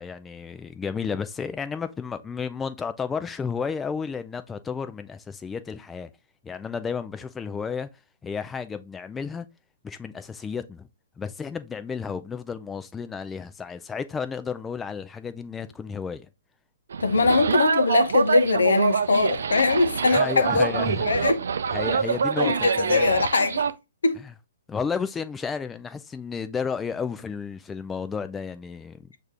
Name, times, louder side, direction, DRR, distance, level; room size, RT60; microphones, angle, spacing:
voice 1, 0.0-6.1 6.4-7.9 8.2-9.5 9.8-10.9 11.2-16.2 20.1-21.3 21.7-23.2 24.2-24.3 24.7-29.1, left 6 dB, 15° left, 0.3 m, -32 dB
sound 1, 16.9-23.7, right 6 dB, 70° right, 0.4 m, -25 dB
voice 2, 17.0-21.5 22.4-23.6 24.0-24.2, left 3 dB, 80° left, 0.6 m, -22 dB
6.4 x 2.5 x 3.3 m
hypercardioid pair, 130°, 0 cm